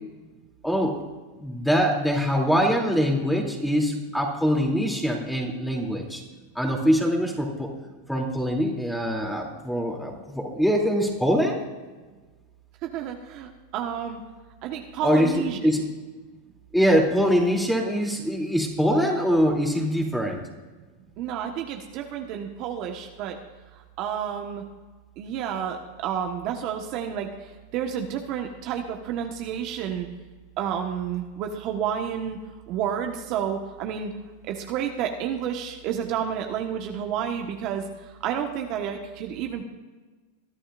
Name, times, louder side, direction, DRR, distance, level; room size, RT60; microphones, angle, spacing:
voice 1, 0.6-1.0 1.4-6.2 6.5-7.7 8.1-11.6 15.0-15.9 16.7-20.4, equal, ahead, 0 dB, 3.0 m, -23 dB
voice 2, 12.8-14.2 14.6-15.7 21.2-23.4 23.7-24.6 25.2-30.1 30.6-32.4 32.7-34.1 34.4-39.6, right 8 dB, 50° right, 3 dB, 1.4 m, -30 dB
22.5 x 11.5 x 2.6 m, 1.3 s
hypercardioid pair, 115°, 0 cm